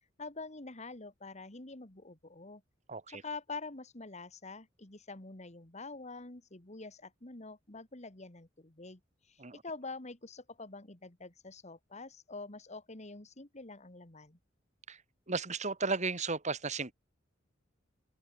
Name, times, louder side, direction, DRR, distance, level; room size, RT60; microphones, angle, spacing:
voice 1, 0.2-2.6 3.1-9.0 9.3-14.4, left 3 dB, 35° left, 2.2 m, -46 dB
voice 2, 2.9-3.2 9.4-9.6 14.9-15.0 15.3-16.9, right 4 dB, 40° right, 2.1 m, -34 dB
open air
head